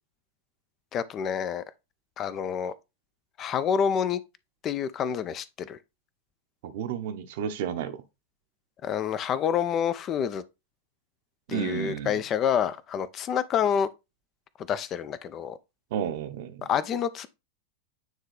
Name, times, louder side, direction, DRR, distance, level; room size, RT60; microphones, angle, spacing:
voice 1, 0.9-1.6 2.2-2.7 3.4-4.2 4.6-5.8 8.8-10.4 11.5-13.9 14.7-15.6 16.7-17.3, left 8 dB, 30° left, 0.4 m, -28 dB
voice 2, 6.6-8.0 11.5-12.2 15.9-16.7, right 8 dB, 50° right, 0.8 m, -32 dB
9.2 x 3.2 x 3.3 m
figure-of-eight pair, 90°, 0 cm